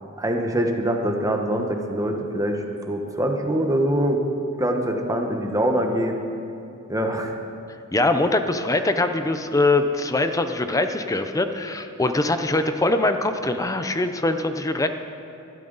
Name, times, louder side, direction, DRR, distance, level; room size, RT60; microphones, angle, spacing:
voice 1, 0.2-4.2 4.6-6.2 6.9-7.3, right 1 dB, 15° right, 3 dB, 1.2 m, -24 dB
voice 2, 7.9-14.9, left 2 dB, 15° left, 8 dB, 0.6 m, -22 dB
22.0 x 12.5 x 4.0 m, 2.8 s
head